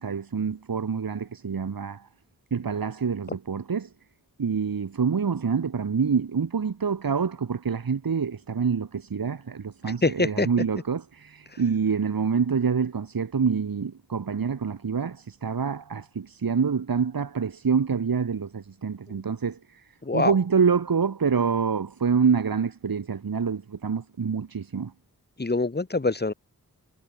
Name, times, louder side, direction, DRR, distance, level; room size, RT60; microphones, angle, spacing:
voice 1, 0.0-2.1 2.5-3.9 4.4-19.9 20.1-24.9, right 6 dB, 75° right, 4.7 m, -26 dB
voice 2, 10.0-10.5 20.0-20.3 25.4-26.3, left 3 dB, 30° left, 3.3 m, -24 dB
wide cardioid pair, 115°, 35 cm